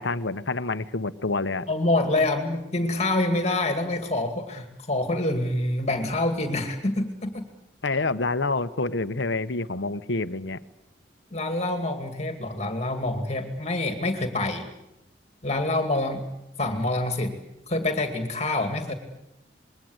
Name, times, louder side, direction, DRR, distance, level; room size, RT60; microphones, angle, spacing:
voice 1, 0.0-1.7 7.8-10.6, left 3 dB, 75° left, 13 dB, 1.1 m, -27 dB
voice 2, 1.7-7.5 11.3-14.7 15.4-16.2 16.6-17.4 17.7-18.9, left 2 dB, 35° left, 6 dB, 2.4 m, -26 dB
27.0 x 21.5 x 8.1 m, 0.87 s
head